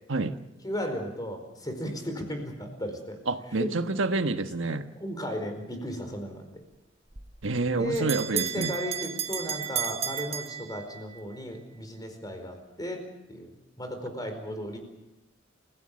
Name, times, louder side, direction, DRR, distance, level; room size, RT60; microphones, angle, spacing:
voice 1, 0.6-3.2 3.6-3.7 4.7-6.4 7.7-13.0 13.3-14.8, equal, 20° left, 6 dB, 4.6 m, -35 dB
voice 2, 3.3-4.9 7.4-8.7, right 3 dB, 85° right, 8 dB, 1.3 m, -28 dB
Bell, 7.1-11.2, right 9 dB, 30° right, 1.4 m, -33 dB
28.5 x 17.0 x 7.7 m, 0.96 s
head